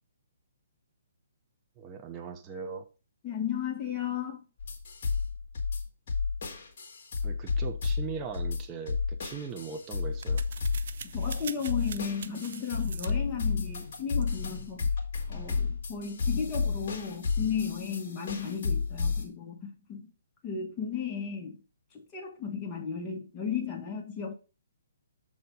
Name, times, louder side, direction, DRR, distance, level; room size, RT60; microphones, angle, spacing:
voice 1, 1.8-2.9 7.2-10.5, right 6 dB, 15° right, 0.6 m, -40 dB
voice 2, 3.2-4.4 11.1-14.9 15.3-20.1 20.4-21.6 22.1-24.3, left 7 dB, 15° left, 1.4 m, -34 dB
sound 1, 4.6-19.2, left 5 dB, 40° left, 2.1 m, -32 dB
sound 2, 9.4-14.8, right 6 dB, 55° right, 0.7 m, -46 dB
7.4 x 4.4 x 5.3 m
hypercardioid pair, 165°, 0 cm